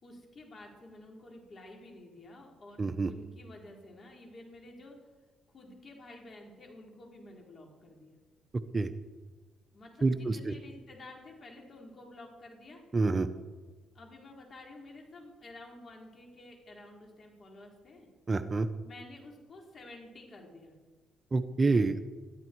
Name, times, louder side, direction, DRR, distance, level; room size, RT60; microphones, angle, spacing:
voice 1, 0.0-5.0 5.5-8.2 9.7-12.8 13.9-18.1 18.8-20.7, left 2 dB, 40° left, 0 dB, 4.5 m, -51 dB
voice 2, 2.8-3.1 8.7-8.9 10.0-10.5 12.9-13.3 18.3-18.7 21.3-22.0, right 3 dB, 30° right, 10 dB, 0.9 m, -27 dB
21.5 x 13.5 x 4.7 m, 1.2 s
cardioid pair, 90°, 0 cm